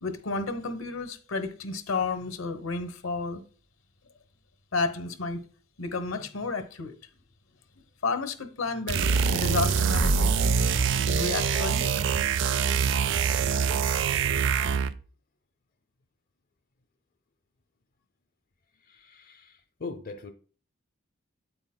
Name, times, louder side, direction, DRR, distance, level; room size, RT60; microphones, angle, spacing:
voice 1, 0.0-3.4 4.7-5.4 5.8-7.0 8.0-10.7 11.0-12.0, left 3 dB, 85° left, 1.0 m, -31 dB
sound 1, 8.9-15.0, right 6 dB, 65° right, 0.4 m, -24 dB
voice 2, 18.8-20.3, left 4 dB, 45° left, 0.6 m, -41 dB
8.9 x 8.1 x 2.2 m
head